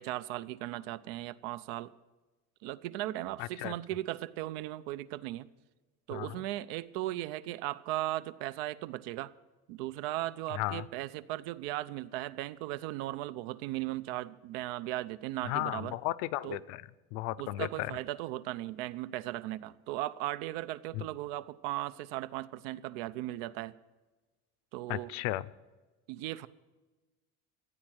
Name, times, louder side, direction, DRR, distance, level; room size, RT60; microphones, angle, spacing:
voice 1, 0.0-1.9 2.6-5.5 6.1-9.3 9.7-16.0 16.4-16.6 17.4-23.7 24.7-25.1 26.1-26.5, right 15 dB, 90° right, 16 dB, 0.7 m, -37 dB
voice 2, 3.4-3.7 6.1-6.4 10.5-10.9 15.4-18.0 20.9-21.1 24.9-25.5, left 17 dB, 65° left, 15 dB, 0.6 m, -35 dB
15.0 x 8.8 x 9.0 m, 1.2 s
cardioid pair, 180°, 29 cm